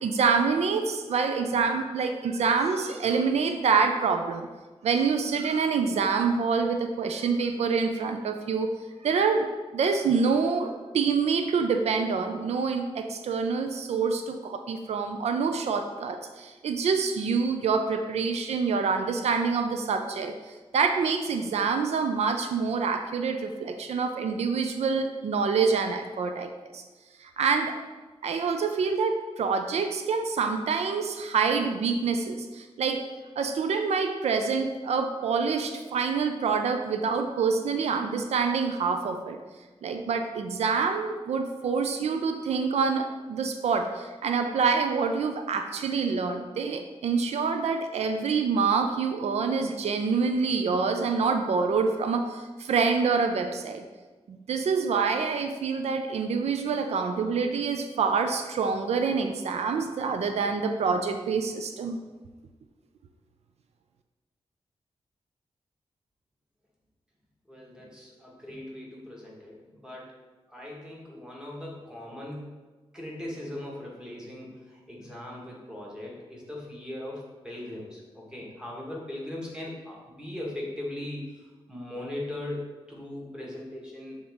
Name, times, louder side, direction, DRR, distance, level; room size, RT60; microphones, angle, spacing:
voice 1, 0.0-4.5 4.8-8.7 9.0-9.5 9.7-20.3 20.7-26.8 27.4-27.8 28.2-33.0 33.4-39.4 39.8-53.8 54.3-62.0, right 5 dB, 90° right, 6 dB, 0.4 m, -26 dB
voice 2, 67.5-70.2 70.5-72.5 72.9-84.2, left 1 dB, 5° right, -4 dB, 1.4 m, -39 dB
7.0 x 3.8 x 3.5 m, 1.3 s
wide cardioid pair, 135°, 11 cm